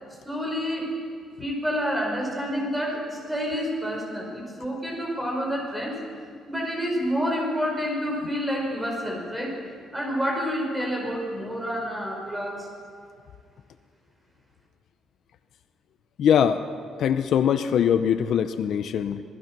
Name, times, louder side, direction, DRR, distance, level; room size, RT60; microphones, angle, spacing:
voice 1, 0.3-0.9 1.4-6.0 6.5-9.5 9.9-12.7, equal, 10° right, -1 dB, 5.2 m, -28 dB
voice 2, 16.2-16.6 17.0-19.2, left 8 dB, 55° left, 10 dB, 0.7 m, -22 dB
27.0 x 19.0 x 6.1 m, 2.2 s
cardioid pair, 160°, 0 cm